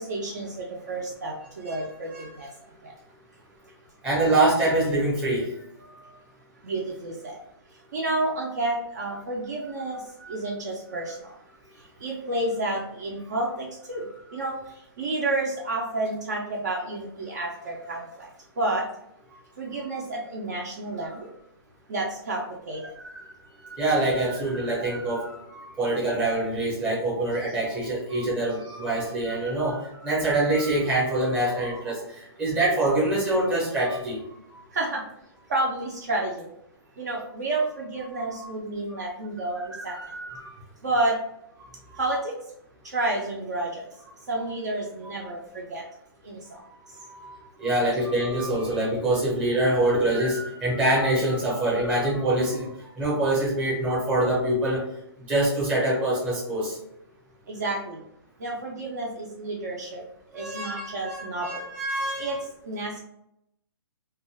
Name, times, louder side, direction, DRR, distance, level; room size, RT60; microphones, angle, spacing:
voice 1, 0.0-2.5 2.8-2.9 6.6-7.4 7.9-10.0 10.3-11.3 12.0-14.6 15.0-18.3 18.6-18.9 19.6-21.3 21.9-22.8 34.7-35.0 35.5-36.5 37.0-39.9 40.8-41.2 42.0-42.3 42.8-43.8 44.3-45.8 46.2-46.4 57.5-58.0 58.4-60.0 60.3-61.6 62.2-62.4 62.6-63.0, right 2 dB, 40° right, -2 dB, 0.5 m, -30 dB
voice 2, 4.0-5.5 10.2-10.4 14.3-14.4 23.0-23.3 23.6-34.2 39.7-40.5 47.1-52.7 53.0-54.8 55.3-56.8 60.3-62.4, right 1 dB, 10° right, -6 dB, 0.7 m, -25 dB
2.4 x 2.3 x 3.2 m, 0.79 s
hypercardioid pair, 165°, 13 cm